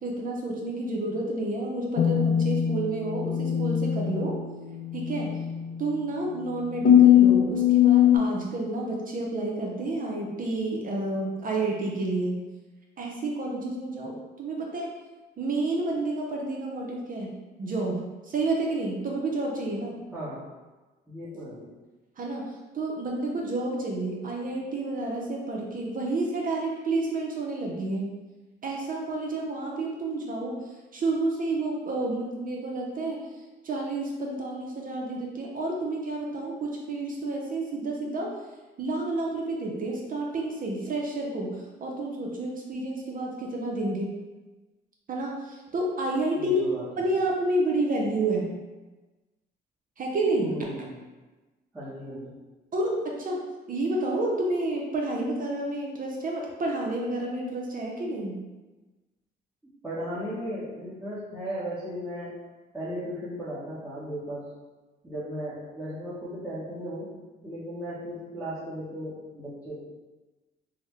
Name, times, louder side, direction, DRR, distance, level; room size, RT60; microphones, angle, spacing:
voice 1, 0.0-4.4 4.9-5.3 5.8-12.4 13.0-14.9 15.4-20.0 22.2-28.2 28.6-33.3 33.6-38.3 38.8-44.1 45.1-46.7 47.0-48.5 50.0-50.6 52.7-53.4 53.7-58.4, right 2 dB, 45° right, -1 dB, 0.6 m, -30 dB
sound 1, 2.0-8.2, left 10 dB, 70° left, 0.7 m, -22 dB
voice 2, 20.1-20.4 21.1-21.8 46.3-47.1 50.4-51.0 51.7-52.3 59.8-62.3 62.7-64.5 65.0-67.1 67.4-69.9, equal, 10° right, -11 dB, 1.0 m, -36 dB
3.7 x 2.1 x 3.1 m, 1.2 s
cardioid pair, 90°, 20 cm